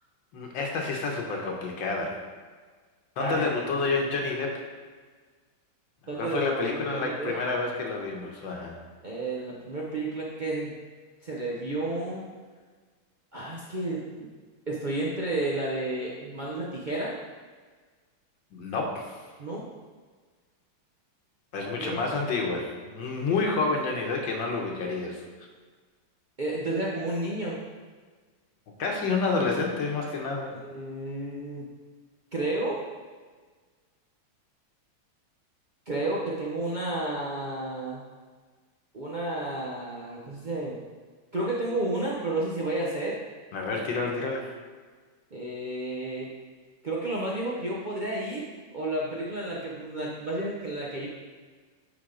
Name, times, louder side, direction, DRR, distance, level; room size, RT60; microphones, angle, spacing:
voice 1, 0.3-2.2 3.2-4.6 6.2-8.8 18.5-19.2 21.5-25.2 28.8-30.5 43.5-44.5, left 3 dB, 75° left, 1 dB, 1.7 m, -29 dB
voice 2, 6.1-7.3 9.0-10.7 11.2-12.2 13.3-14.3 14.7-17.1 19.4-19.7 21.8-22.0 26.4-27.6 30.5-31.6 32.3-32.9 35.9-38.0 38.9-40.8 41.3-43.2 45.3-46.3 46.8-48.5 48.7-51.1, right 2 dB, 65° right, -5 dB, 0.4 m, -31 dB
9.7 x 4.0 x 3.7 m, 1.5 s
omnidirectional pair, 2.1 m